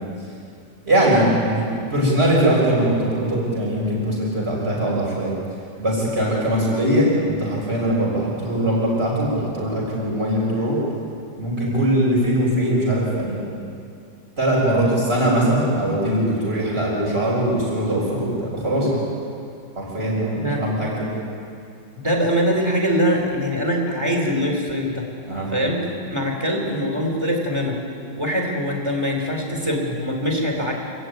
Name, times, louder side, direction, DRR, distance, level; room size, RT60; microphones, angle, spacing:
voice 1, 0.9-5.3 5.8-10.8 11.4-13.4 14.4-19.0 19.7-21.1 25.3-25.5, right 1 dB, 35° right, -4 dB, 6.7 m, -21 dB
voice 2, 22.0-25.1 25.5-27.8 28.2-30.7, equal, 15° right, 0 dB, 4.4 m, -23 dB
27.5 x 14.0 x 9.7 m, 2.5 s
omnidirectional pair, 2.0 m